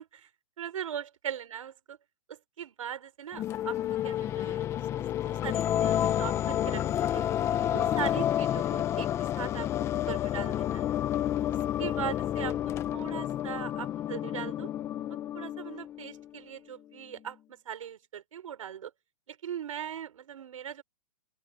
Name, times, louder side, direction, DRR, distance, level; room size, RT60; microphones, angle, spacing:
voice 1, 0.6-2.0 2.3-3.8 4.0-4.7 5.1-7.2 7.7-11.0 11.5-12.6 12.9-14.7 15.1-17.4 17.6-18.9 19.3-20.8, right 9 dB, 75° right, 4.3 m, -40 dB
sound 1, 3.3-16.3, left 11 dB, 15° left, 0.9 m, -30 dB
open air
hypercardioid pair, 160°, 17 cm